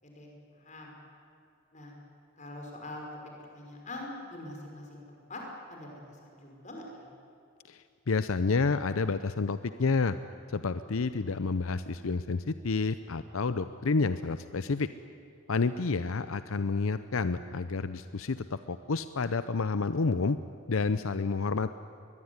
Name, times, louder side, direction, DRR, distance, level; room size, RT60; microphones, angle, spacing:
voice 1, 0.0-0.9 1.7-1.9 2.4-3.1 3.4-5.4 5.7-7.1, left 1 dB, 35° left, 0 dB, 5.5 m, -44 dB
voice 2, 7.7-10.2 10.5-14.9 15.5-20.4 20.7-21.8, left 4 dB, 80° left, 12 dB, 0.7 m, -29 dB
22.0 x 22.0 x 9.7 m, 2.6 s
head